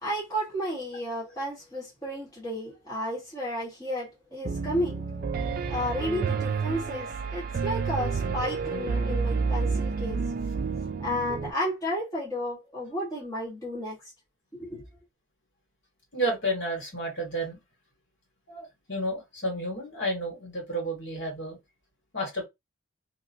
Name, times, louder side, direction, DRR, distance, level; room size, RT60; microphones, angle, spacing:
voice 1, 0.0-5.0 5.7-10.2 11.0-14.0 14.5-14.8, equal, 15° left, 1.2 m, -32 dB
Piano, 4.4-11.5, right 4 dB, 45° right, 0.3 m, -29 dB
voice 2, 16.1-17.6 18.5-21.6 22.1-22.5, right 1 dB, 60° left, 1.7 m, -31 dB
2.8 x 2.7 x 2.6 m
head